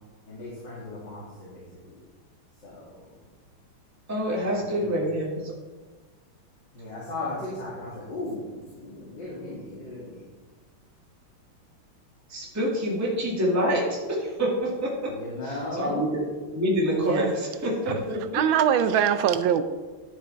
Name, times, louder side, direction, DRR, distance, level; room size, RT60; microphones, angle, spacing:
voice 1, 0.3-2.0 2.6-3.1 4.4-5.1 6.7-10.2 15.1-16.1, left 2 dB, 55° left, 2.9 m, -37 dB
voice 2, 4.1-5.5 12.3-14.9 15.7-16.2 16.5-18.2, equal, 10° right, 1.9 m, -26 dB
voice 3, 16.9-17.3 17.9-18.0 18.3-19.6, right 9 dB, 75° right, 1.3 m, -23 dB
11.5 x 7.1 x 4.5 m
omnidirectional pair, 2.3 m